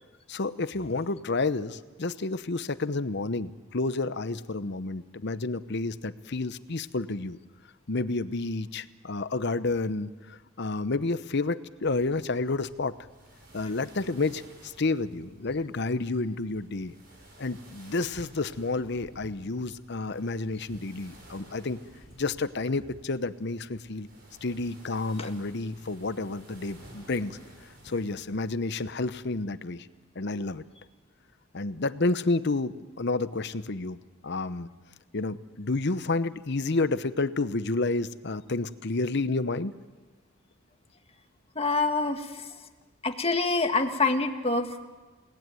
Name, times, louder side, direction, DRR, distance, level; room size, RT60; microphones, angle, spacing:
voice 1, 0.3-7.4 7.9-13.0 13.5-16.9 17.4-21.8 22.2-24.1 24.4-29.9 30.2-30.6 31.5-34.0 34.2-34.7 35.1-39.7, left 3 dB, 55° left, 14 dB, 0.9 m, -30 dB
sound 1, 11.8-29.4, right 1 dB, 50° right, 7.9 m, -53 dB
voice 2, 41.6-42.6 43.0-44.9, left 3 dB, 30° left, 6 dB, 1.7 m, -26 dB
29.5 x 18.5 x 9.2 m, 1.3 s
head